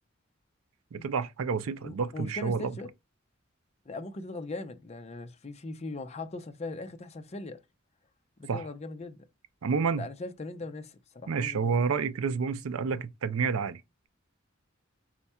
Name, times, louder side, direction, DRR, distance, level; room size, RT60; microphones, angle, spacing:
voice 1, 0.9-2.7 8.5-8.7 9.6-10.0 11.3-13.8, right 5 dB, 90° right, 0.5 m, -29 dB
voice 2, 1.8-2.9 3.9-7.6 8.4-9.3 9.9-11.8, left 2 dB, 30° left, 0.5 m, -40 dB
4.4 x 2.3 x 4.2 m
head